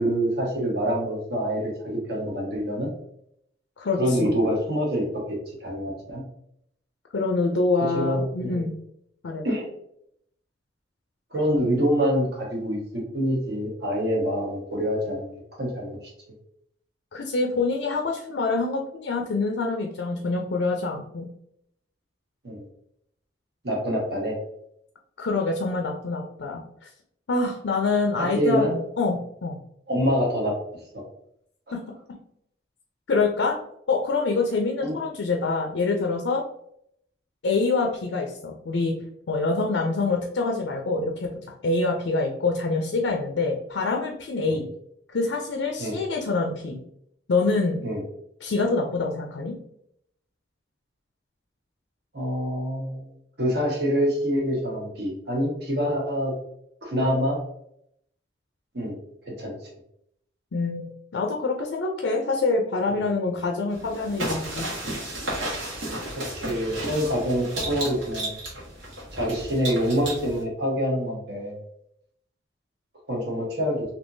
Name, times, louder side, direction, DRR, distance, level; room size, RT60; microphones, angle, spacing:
voice 1, 0.0-2.9 4.0-6.2 7.9-8.7 9.4-9.7 11.3-15.3 15.6-16.0 22.4-22.6 23.6-24.4 28.2-28.8 29.9-30.5 30.9-31.0 34.8-35.0 44.5-44.6 45.8-46.0 47.8-48.0 52.1-53.1 53.4-56.3 56.8-57.4 58.7-58.9 59.3-59.5 66.1-68.3 69.1-71.5 73.1-73.8, equal, 55° right, -1 dB, 1.1 m, -26 dB
voice 2, 3.8-4.3 7.1-8.7 9.2-9.4 17.1-21.3 25.2-26.6 27.3-28.6 29.0-29.2 29.4-29.6 31.7-31.8 33.1-33.6 33.9-36.4 37.4-39.0 39.3-41.3 41.6-44.7 45.1-46.8 47.3-47.8 48.4-49.6 60.5-64.7, left 3 dB, 70° left, 1 dB, 0.5 m, -25 dB
sound 1, 63.7-70.4, right 1 dB, 80° right, 1.3 m, -33 dB
3.5 x 2.8 x 2.6 m, 0.72 s
head